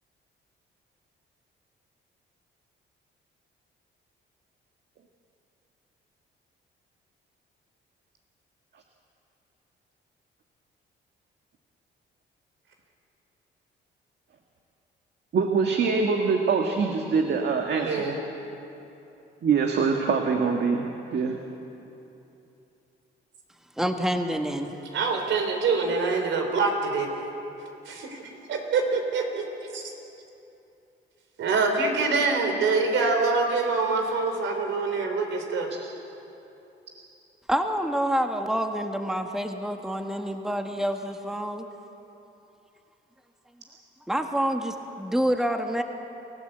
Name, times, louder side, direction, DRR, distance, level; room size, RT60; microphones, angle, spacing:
voice 1, 15.3-18.1 19.4-21.4, right 5 dB, 60° right, 3 dB, 1.8 m, -24 dB
voice 2, 17.8-18.2 24.9-27.1 27.9-28.2 28.5-29.4 29.7-29.8 31.4-35.7, right 4 dB, 75° right, 3 dB, 4.2 m, -25 dB
voice 3, 23.8-24.8 37.5-41.7 44.1-45.8, equal, ahead, 4 dB, 1.5 m, -27 dB
28.5 x 15.0 x 8.0 m, 2.9 s
cardioid pair, 90°, 20 cm